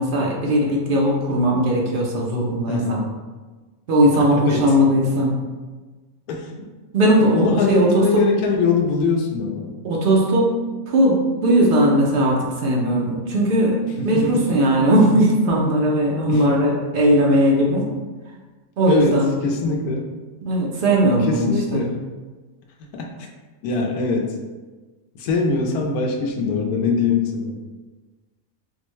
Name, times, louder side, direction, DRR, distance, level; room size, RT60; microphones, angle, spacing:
voice 1, 0.0-3.0 3.9-5.4 6.9-8.2 9.8-10.5 10.9-13.8 14.0-17.9 18.8-19.3 20.4-21.9, right 1 dB, 80° right, -2 dB, 0.4 m, -18 dB
voice 2, 2.7-3.0 4.1-4.6 6.3-6.4 7.2-9.7 14.0-14.4 16.3-16.4 18.9-20.1 21.2-22.1 22.9-23.1 23.6-24.3 25.1-27.6, left 4 dB, 80° left, 0 dB, 1.1 m, -22 dB
4.0 x 2.1 x 3.0 m, 1.3 s
omnidirectional pair, 1.6 m